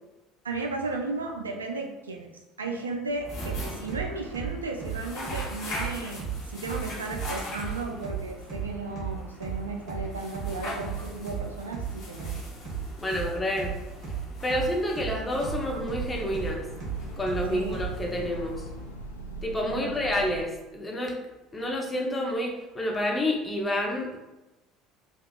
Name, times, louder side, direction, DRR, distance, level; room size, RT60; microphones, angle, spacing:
voice 1, 0.4-2.3 2.6-12.4 14.4-14.7 17.5-17.8 19.7-20.0, right 3 dB, 80° right, 2 dB, 0.3 m, -35 dB
sound 1, 3.1-19.2, equal, 55° left, 0.9 m, -41 dB
sound 2, 3.4-18.0, right 7 dB, 50° right, 1.2 m, -34 dB
voice 2, 13.0-13.8 14.4-16.7 17.2-18.7 19.4-21.1 21.5-24.2, left 1 dB, 20° left, 0 dB, 0.7 m, -29 dB
Train, 15.0-20.7, right 2 dB, 85° left, 0.3 m, -40 dB
3.3 x 2.3 x 2.3 m, 1.0 s
figure-of-eight pair, 60°, 0 cm